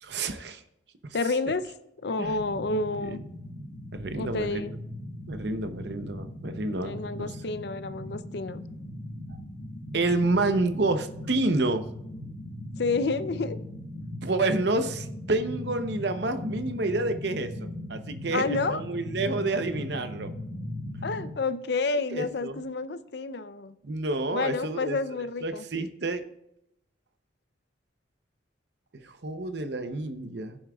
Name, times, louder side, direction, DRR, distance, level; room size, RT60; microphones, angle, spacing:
voice 1, 0.0-0.6 2.2-2.4 3.0-3.2 3.9-4.8 5.3-7.4 9.9-11.9 14.2-20.3 22.1-22.6 23.8-25.0 25.4-26.2 28.9-30.6, right 2 dB, 60° right, 9 dB, 0.8 m, -29 dB
voice 2, 1.1-1.7 2.0-3.2 4.2-4.8 6.8-8.7 12.8-13.6 18.3-18.8 21.0-23.7 24.3-25.7, left 3 dB, 60° left, 13 dB, 0.5 m, -29 dB
sound 1, 2.3-21.3, left 1 dB, 40° left, 1.3 m, -39 dB
16.0 x 7.2 x 2.4 m, 0.81 s
head